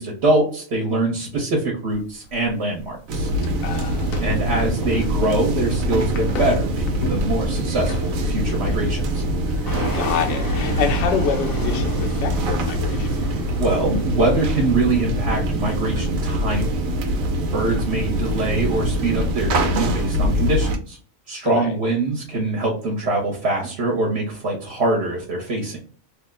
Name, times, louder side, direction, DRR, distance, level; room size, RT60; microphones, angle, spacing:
voice 1, 0.0-3.3 4.2-9.2 13.6-17.2 17.5-21.0 21.3-25.8, right 2 dB, 55° right, 0 dB, 1.1 m, -23 dB
sound 1, 1.9-10.8, left 2 dB, 85° left, 1.1 m, -35 dB
sound 2, 3.1-20.8, right 1 dB, 80° right, 1.0 m, -23 dB
voice 2, 3.6-4.4 9.9-13.1 21.4-21.8, left 6 dB, 65° left, 4 dB, 0.7 m, -27 dB
Fixed-wing aircraft airplane, 9.7-15.1, left 3 dB, 30° left, 0.4 m, -33 dB
3.1 x 2.1 x 3.5 m, 0.43 s
omnidirectional pair, 1.4 m